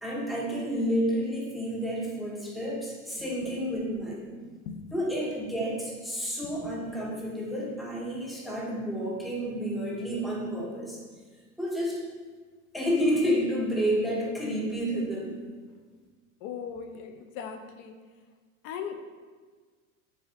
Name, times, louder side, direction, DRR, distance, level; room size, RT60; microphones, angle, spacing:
voice 1, 0.0-4.3 4.9-11.0 11.6-12.0 12.7-15.4, equal, ahead, -4 dB, 0.6 m, -30 dB
voice 2, 16.4-17.9 18.6-19.1, left 7 dB, 55° left, 6 dB, 0.5 m, -38 dB
4.2 x 2.5 x 2.5 m, 1.5 s
hypercardioid pair, 95°, 41 cm